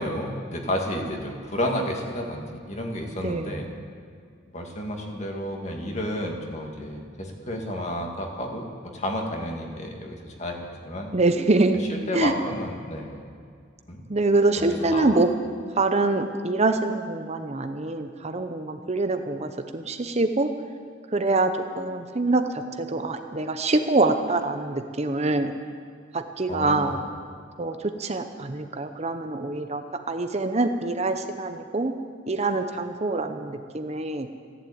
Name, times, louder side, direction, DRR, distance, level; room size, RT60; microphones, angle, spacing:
voice 1, 0.0-3.7 4.5-8.7 8.9-11.1 11.8-13.2 13.9-14.0 14.6-15.2 26.5-27.0, equal, 35° left, 1 dB, 2.2 m, -31 dB
voice 2, 3.2-3.6 11.1-11.9 12.1-12.3 14.1-15.3 15.8-20.5 21.1-21.5 21.8-25.5 26.1-27.0 27.6-29.8 30.1-31.9 32.3-34.3, right 2 dB, 35° right, 7 dB, 0.8 m, -25 dB
15.0 x 11.0 x 8.7 m, 2.2 s
head